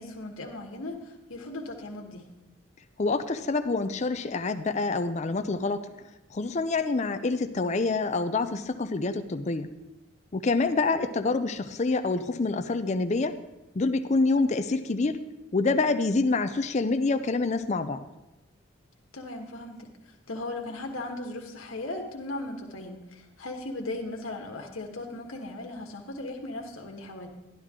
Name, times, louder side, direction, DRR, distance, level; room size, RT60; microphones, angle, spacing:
voice 1, 0.0-2.2 19.1-27.3, left 2 dB, 90° left, 1 dB, 1.4 m, -37 dB
voice 2, 3.0-5.9 6.3-9.7 10.3-13.3 13.7-15.2 15.5-18.0, left 3 dB, 35° left, 9 dB, 0.5 m, -26 dB
11.5 x 11.5 x 3.7 m, 1.0 s
head